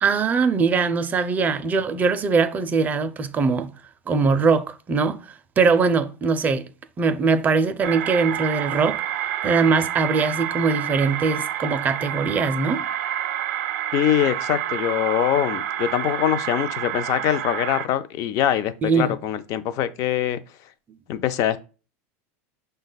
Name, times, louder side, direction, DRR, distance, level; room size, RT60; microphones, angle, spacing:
voice 1, 0.0-3.7 4.1-6.7 7.0-9.0 9.4-12.9 18.8-19.2, right 4 dB, 20° right, 0.4 m, -21 dB
sound 1, 7.8-17.9, right 11 dB, 80° right, 0.5 m, -28 dB
voice 2, 13.9-20.4 21.1-21.6, left 11 dB, 45° left, 0.4 m, -23 dB
5.9 x 2.2 x 3.9 m
supercardioid pair, 140°, 8 cm